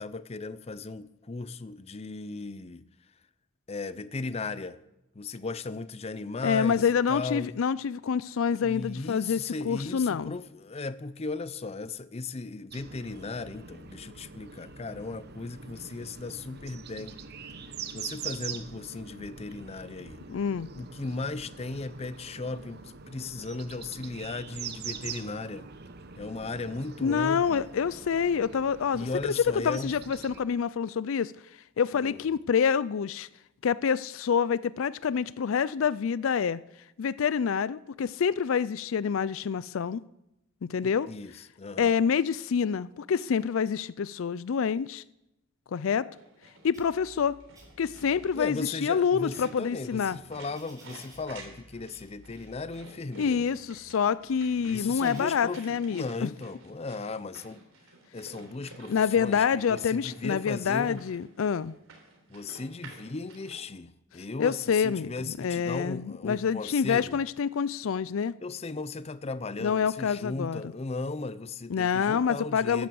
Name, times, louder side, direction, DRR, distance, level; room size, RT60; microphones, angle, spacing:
voice 1, 0.0-2.9 3.7-4.8 5.1-7.5 8.6-17.2 17.9-20.2 20.7-25.7 26.2-27.7 28.9-29.9 31.9-32.2 40.8-42.0 48.3-53.5 54.6-57.6 58.1-61.0 62.3-67.2 68.4-72.9, left 3 dB, 30° left, 0.5 m, -36 dB
voice 2, 6.4-9.4 9.6-10.3 20.3-20.7 27.0-29.1 29.4-31.3 31.8-33.3 33.6-36.6 37.0-40.0 40.6-41.1 41.8-45.0 45.7-46.1 46.6-47.3 47.8-50.2 53.2-56.3 58.9-61.7 64.4-65.1 65.4-68.3 69.6-70.6 71.7-72.9, left 7 dB, 80° left, 0.4 m, -27 dB
sound 1, 12.7-30.4, right 6 dB, 55° right, 0.9 m, -44 dB
sound 2, 46.1-63.6, right 3 dB, 85° right, 3.8 m, -52 dB
sound 3, 46.7-47.3 47.5-48.3 48.8-51.6 51.9-52.6 53.2-55.4, equal, 20° right, 6.1 m, -56 dB
14.0 x 11.0 x 7.0 m
head